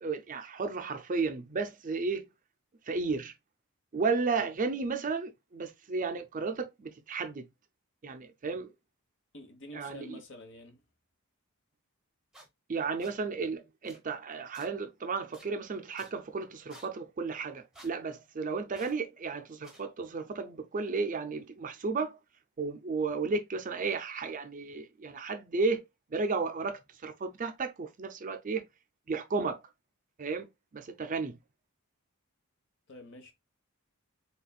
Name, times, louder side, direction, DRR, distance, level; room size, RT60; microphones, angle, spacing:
voice 1, 0.0-2.3 2.9-3.3 3.9-7.5 8.0-8.7 9.7-10.2 12.7-22.2 22.6-25.8 26.1-28.6 29.1-29.6 30.2-30.5 30.7-31.4, right 4 dB, 35° right, 0.5 m, -33 dB
voice 2, 9.3-10.8 32.9-33.3, left 1 dB, 55° left, 1.1 m, -48 dB
sound 1, 12.3-12.5 13.0-13.1 13.8-14.0 14.5-14.7 15.3-15.5 16.0-16.1 16.7-16.9 17.7-17.9 18.7-19.0 19.6-19.8, right 1 dB, ahead, 0.9 m, -53 dB
4.1 x 3.4 x 2.3 m
head